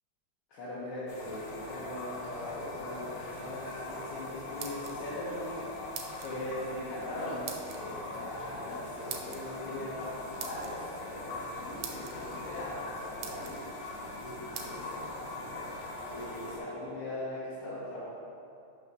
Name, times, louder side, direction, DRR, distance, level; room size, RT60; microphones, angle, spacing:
voice 1, 0.5-5.8 6.2-13.7 14.2-18.0, left 1 dB, 80° left, -10 dB, 2.0 m, -40 dB
sound 1, 1.1-16.6, left 2 dB, 60° left, 1.3 m, -41 dB
sound 2, 4.6-5.2 5.9-6.3 7.5-7.8 9.1-9.4 10.4-10.7 11.4-11.5 11.8-12.1 12.8-12.9 13.2-13.6 14.5-14.7, right 7 dB, 90° right, 1.6 m, -41 dB
7.9 x 2.9 x 5.4 m, 2.7 s
omnidirectional pair, 2.3 m